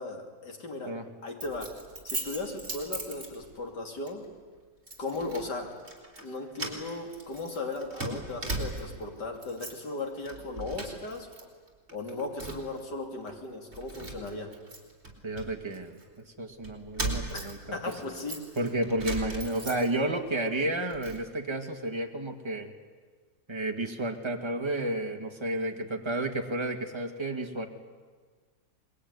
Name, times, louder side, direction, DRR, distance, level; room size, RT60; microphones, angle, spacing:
voice 1, 0.0-0.9 1.2-1.7 2.0-4.2 5.0-5.7 6.2-11.3 11.9-14.5 17.3-18.4, left 2 dB, 85° left, 3 dB, 3.5 m, -37 dB
Keys jangling, 1.4-3.7 4.1-4.3 4.9-5.5 5.8-6.3 6.5-9.0 9.4-9.9 10.2-11.4 11.7-12.8 13.3-13.4 13.7-16.1 16.6-20.2 20.6-21.2, right 2 dB, 40° right, 4.3 m, -38 dB
voice 2, 15.2-18.0 18.6-22.7 23.5-27.7, right 1 dB, 15° right, 3 dB, 1.9 m, -31 dB
25.5 x 21.5 x 9.6 m, 1.5 s
omnidirectional pair, 1.8 m